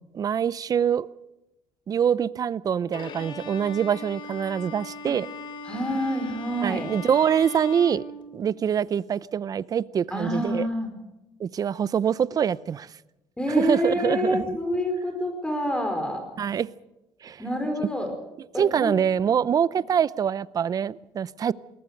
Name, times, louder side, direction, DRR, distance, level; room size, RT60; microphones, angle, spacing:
voice 1, 0.1-1.1 1.9-5.3 6.6-8.0 8.3-10.7 11.4-12.9 13.5-14.6 16.4-16.7 17.2-17.4 18.6-21.5, right 8 dB, 40° right, 19 dB, 0.6 m, -24 dB
Bowed string instrument, 2.9-8.8, left 2 dB, 55° left, 3.0 m, -39 dB
voice 2, 5.6-6.9 10.1-10.9 13.4-16.2 17.4-18.1 18.5-19.0, equal, 10° left, 6 dB, 4.9 m, -27 dB
21.5 x 18.5 x 6.5 m, 0.97 s
cardioid pair, 110°, 10 cm